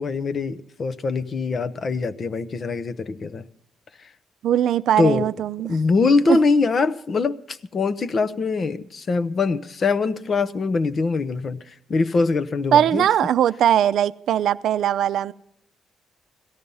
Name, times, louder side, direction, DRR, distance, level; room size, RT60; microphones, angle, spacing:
voice 1, 0.0-3.4 5.0-5.3 5.7-13.1, left 4 dB, 35° left, 0.8 m, -23 dB
voice 2, 4.4-5.8 6.3-6.4 12.7-15.3, right 10 dB, 75° right, 0.5 m, -20 dB
17.0 x 14.5 x 5.5 m
cardioid pair, 145°, 0 cm